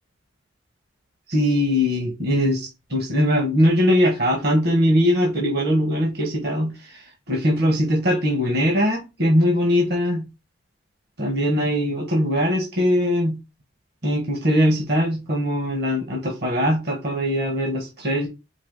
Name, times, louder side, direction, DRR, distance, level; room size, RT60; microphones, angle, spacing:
voice 1, 1.3-10.2 11.2-13.4 14.0-18.3, equal, 60° right, 1.2 m, -21 dB
4.8 x 2.8 x 3.7 m
head